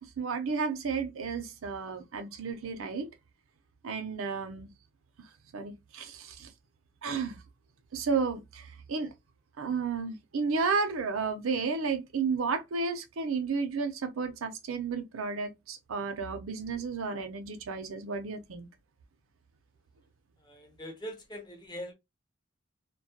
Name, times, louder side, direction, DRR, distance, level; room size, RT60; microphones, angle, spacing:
voice 1, 0.0-3.1 3.8-4.7 5.5-6.5 7.0-7.4 7.9-9.1 9.6-18.7, right 5 dB, 80° right, 0.5 m, -32 dB
voice 2, 20.4-21.9, equal, 20° left, 0.6 m, -42 dB
2.3 x 2.0 x 2.7 m
head